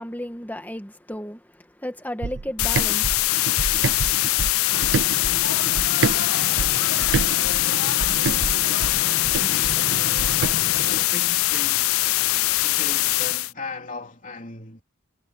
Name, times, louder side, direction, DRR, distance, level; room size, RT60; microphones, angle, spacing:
voice 1, 0.0-4.2, left 1 dB, 10° left, 1.8 m, -35 dB
sound 1, 2.2-6.2 6.6-10.6, right 4 dB, 60° right, 0.6 m, -28 dB
sound 2, 2.6-13.5, left 18 dB, 85° left, 0.4 m, -22 dB
sound 3, 4.7-11.0, left 4 dB, 70° left, 1.4 m, -32 dB
voice 2, 9.4-9.9 10.8-14.8, left 3 dB, 40° left, 3.5 m, -38 dB
head